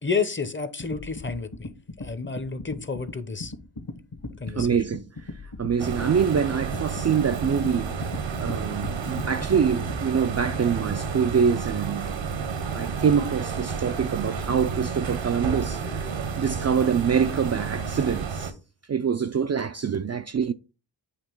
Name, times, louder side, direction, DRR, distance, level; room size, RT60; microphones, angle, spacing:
voice 1, 0.0-1.7 2.0-3.5 4.4-4.7, left 5 dB, 25° left, 0.8 m, -30 dB
sound 1, 0.8-10.3, left 2 dB, 50° left, 1.3 m, -38 dB
voice 2, 4.6-5.0 5.6-7.9 8.3-12.2 12.7-16.1 16.4-18.5 18.9-20.5, right 7 dB, 35° right, 0.4 m, -25 dB
sound 2, 5.8-18.5, right 5 dB, 75° right, 1.0 m, -31 dB
8.4 x 2.9 x 4.6 m
cardioid pair, 55°, 46 cm